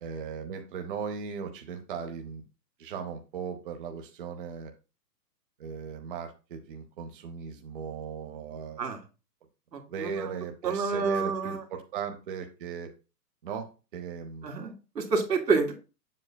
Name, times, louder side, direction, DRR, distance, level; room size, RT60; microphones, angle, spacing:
voice 1, 0.0-2.4 2.8-4.7 5.6-8.8 9.9-12.9 13.4-14.5, right 6 dB, 35° right, 4 dB, 0.7 m, -37 dB
voice 2, 9.7-10.3 10.6-11.6 14.4-15.7, right 4 dB, 80° right, 3 dB, 2.2 m, -28 dB
7.6 x 7.5 x 2.2 m, 0.31 s
hypercardioid pair, 155°, 49 cm